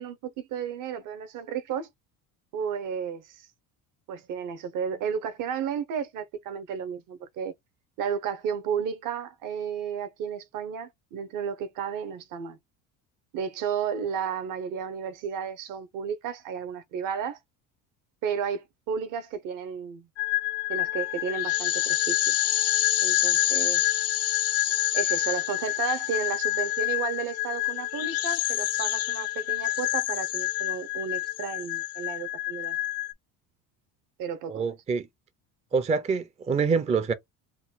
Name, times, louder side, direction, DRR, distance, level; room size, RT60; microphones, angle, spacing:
voice 1, 0.0-1.9 2.5-3.4 4.1-7.5 8.0-12.6 13.3-17.4 18.2-20.1 20.7-22.3 23.0-24.0 24.9-32.8 34.2-34.7, right 7 dB, 60° right, 0.9 m, -33 dB
sound 1, 20.2-33.1, left 15 dB, 45° left, 0.6 m, -27 dB
voice 2, 34.5-35.1 35.7-37.1, right 5 dB, 20° right, 0.5 m, -26 dB
4.1 x 2.2 x 3.9 m
cardioid pair, 140°, 36 cm